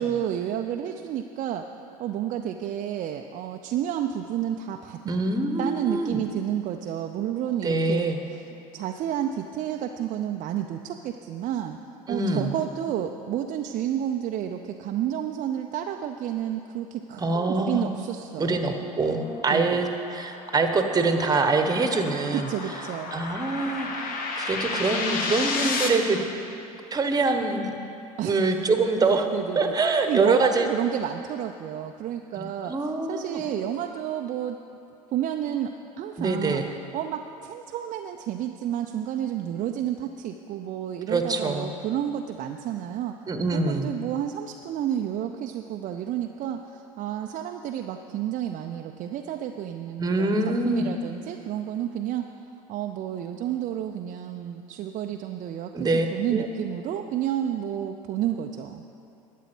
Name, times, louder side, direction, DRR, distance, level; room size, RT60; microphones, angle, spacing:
voice 1, 0.0-1.7 2.0-5.1 5.6-11.8 12.1-18.6 19.5-19.8 22.3-23.1 28.2-28.4 29.0-29.8 30.1-34.6 35.1-52.3 52.7-58.8, right 10 dB, 45° right, 4 dB, 0.5 m, -30 dB
voice 2, 5.1-6.2 7.6-8.2 12.1-12.5 17.2-17.9 18.4-22.5 23.1-26.2 26.9-27.7 28.2-29.3 29.5-30.7 32.4-33.4 36.2-36.7 41.1-41.7 43.3-43.9 50.0-50.9 55.7-56.5, right 3 dB, 20° right, 6 dB, 1.1 m, -25 dB
sound 1, 19.0-25.9, left 3 dB, 50° left, 1.4 m, -32 dB
11.5 x 8.3 x 6.1 m, 2.7 s
hypercardioid pair, 70°, 19 cm